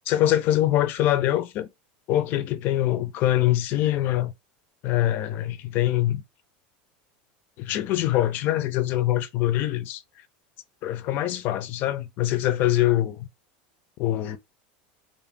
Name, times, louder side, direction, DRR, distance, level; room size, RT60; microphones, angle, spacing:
voice 1, 0.1-1.7 2.1-4.3 4.8-6.2 7.6-10.0 10.8-13.3 14.0-14.4, left 14 dB, 45° left, 0.4 m, -24 dB
2.4 x 2.1 x 3.4 m
supercardioid pair, 150°, 5 cm